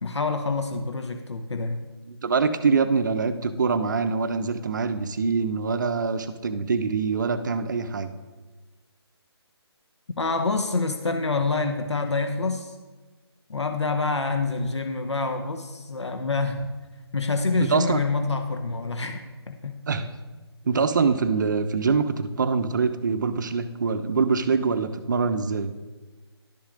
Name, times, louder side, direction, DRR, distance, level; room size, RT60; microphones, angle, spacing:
voice 1, 0.0-1.8 10.2-12.7 13.5-16.7 17.1-19.2 19.5-19.8, left 3 dB, 85° left, 6 dB, 0.8 m, -27 dB
voice 2, 2.1-8.1 17.7-18.0 19.9-20.1 20.7-25.7, right 5 dB, 45° right, 11 dB, 0.5 m, -24 dB
11.5 x 7.1 x 2.5 m, 1.3 s
figure-of-eight pair, 155°, 14 cm